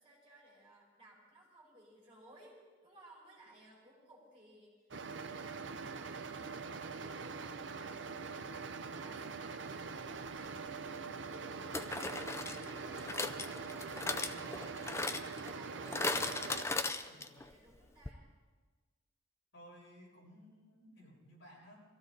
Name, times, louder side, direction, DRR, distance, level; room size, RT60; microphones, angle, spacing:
voice 1, 0.0-10.5 11.2-14.1 16.9-18.3, right 1 dB, 25° right, -6 dB, 5.2 m, -61 dB
sound 1, 4.9-16.6, right 5 dB, 65° right, 0.7 m, -43 dB
sound 2, 10.4-10.6 11.7-17.5 17.8-17.9 18.1-18.2, left 3 dB, 15° left, 0.5 m, -38 dB
voice 2, 19.5-21.8, equal, 65° left, -5 dB, 6.9 m, -57 dB
23.0 x 15.5 x 4.0 m, 1.4 s
head